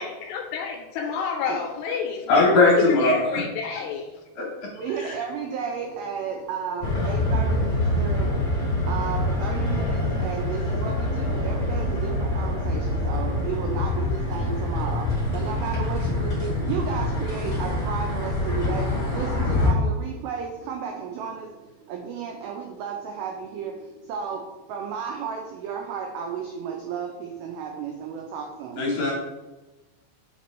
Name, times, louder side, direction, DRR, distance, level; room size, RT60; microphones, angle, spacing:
voice 1, 0.0-4.2, left 6 dB, 80° left, 2 dB, 2.5 m, -29 dB
voice 2, 2.3-3.4 4.4-4.5 28.8-29.1, left 2 dB, 65° left, -3 dB, 2.3 m, -19 dB
voice 3, 4.8-28.9, right 6 dB, 90° right, 1 dB, 2.1 m, -33 dB
sound 1, 6.8-19.7, left 1 dB, 40° left, 1.5 m, -25 dB
7.2 x 4.4 x 3.1 m, 1.1 s
omnidirectional pair, 5.1 m